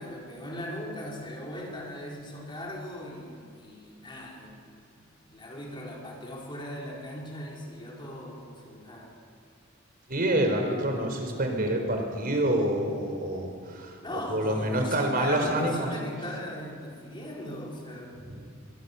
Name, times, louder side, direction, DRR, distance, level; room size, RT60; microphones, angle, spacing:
voice 1, 0.0-9.1 14.0-18.1, left 1 dB, 25° left, -2 dB, 4.7 m, -39 dB
voice 2, 10.1-15.9 18.2-18.4, right 1 dB, 45° right, 4 dB, 4.1 m, -27 dB
24.0 x 23.5 x 7.0 m, 2.3 s
head